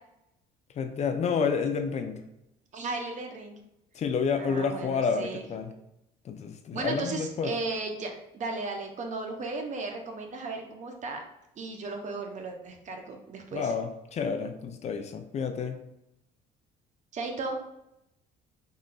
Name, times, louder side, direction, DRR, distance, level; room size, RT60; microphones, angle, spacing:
voice 1, 0.8-2.2 4.0-5.7 6.3-7.5 13.5-15.8, left 5 dB, 40° left, 7 dB, 0.4 m, -29 dB
voice 2, 2.7-3.5 4.4-5.4 6.7-11.2 11.6-13.7 17.1-17.6, right 3 dB, 45° right, 3 dB, 0.7 m, -35 dB
3.9 x 3.0 x 2.2 m, 0.85 s
cardioid pair, 110°, 17 cm